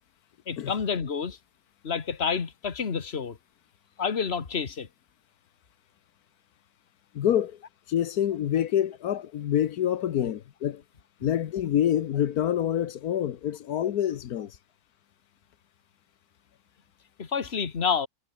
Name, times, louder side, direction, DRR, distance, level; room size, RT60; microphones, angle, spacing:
voice 1, 0.5-1.4 1.8-3.4 4.0-4.9 17.2-18.1, left 6 dB, 45° left, 1.8 m, -29 dB
voice 2, 7.1-7.6 7.9-10.8 11.2-14.6, left 10 dB, 85° left, 1.4 m, -26 dB
omnidirectional pair, 1.6 m